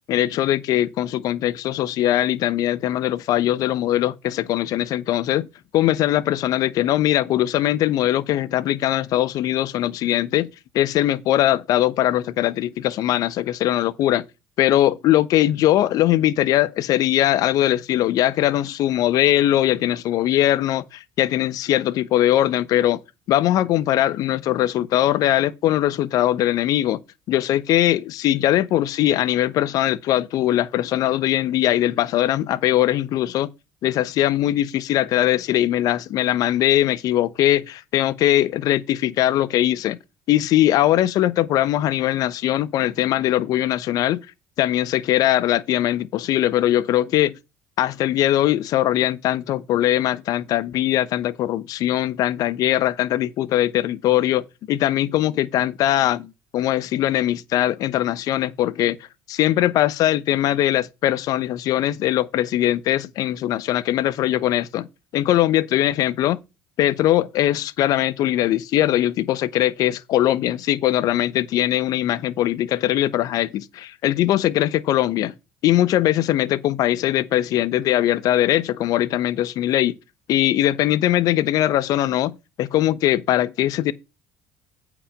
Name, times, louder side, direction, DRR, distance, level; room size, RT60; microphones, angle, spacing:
voice 1, 0.1-5.5 5.7-10.5 10.7-14.2 14.6-23.0 23.3-27.0 27.3-33.5 33.8-40.0 40.3-44.2 44.6-47.3 47.8-59.0 59.3-64.9 65.1-66.4 66.8-75.3 75.6-80.0 80.3-83.9, left 13 dB, 65° left, 0.8 m, -21 dB
8.7 x 5.0 x 7.1 m
supercardioid pair, 75°, 7 cm